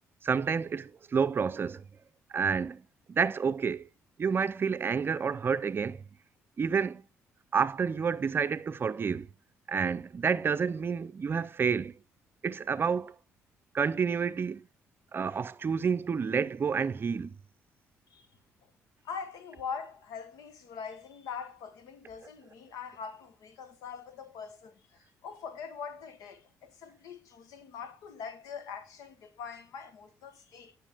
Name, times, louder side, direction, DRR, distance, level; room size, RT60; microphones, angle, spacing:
voice 1, 0.2-1.8 2.3-2.8 3.1-3.9 4.2-6.0 6.6-7.0 7.5-9.3 9.7-11.9 12.4-13.1 13.7-14.7 15.1-17.3, right 6 dB, 40° right, 0.5 m, -29 dB
voice 2, 19.0-30.7, left 6 dB, 80° left, 1.1 m, -43 dB
9.6 x 5.7 x 3.5 m
supercardioid pair, 70°, 6 cm